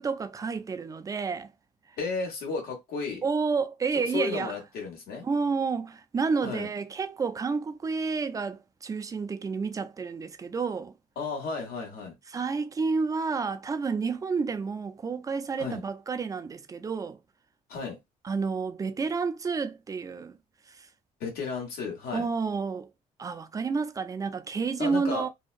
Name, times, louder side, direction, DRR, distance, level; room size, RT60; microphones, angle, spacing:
voice 1, 0.0-1.5 3.2-4.5 5.2-10.9 12.3-17.2 18.2-20.4 20.8-20.9 22.1-22.9 23.2-25.3, right 5 dB, 20° right, 0.4 m, -30 dB
voice 2, 2.0-3.2 3.9-5.3 6.4-6.7 11.2-12.2 15.6-15.8 17.7-18.0 21.2-22.3 24.8-25.3, left 4 dB, 80° left, 1.3 m, -33 dB
2.7 x 2.2 x 2.4 m
cardioid pair, 105°, 15 cm